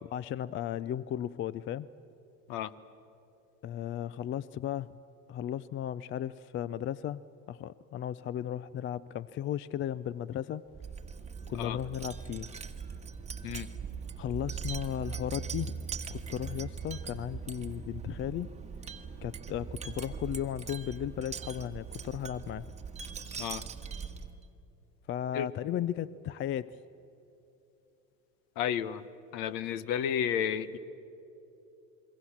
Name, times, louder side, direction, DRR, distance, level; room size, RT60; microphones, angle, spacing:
voice 1, 0.0-1.9 3.6-4.9 5.3-10.6 11.5-12.5 14.2-15.8 16.1-18.5 19.2-22.7 25.1-26.8, left 11 dB, 30° left, 19 dB, 0.5 m, -35 dB
Wind chime, 10.7-24.5, right 6 dB, 15° right, 1.6 m, -41 dB
voice 2, 28.6-29.1 29.3-30.8, left 9 dB, 60° left, 16 dB, 1.2 m, -32 dB
27.5 x 22.5 x 7.2 m, 2.9 s
supercardioid pair, 100°, 39 cm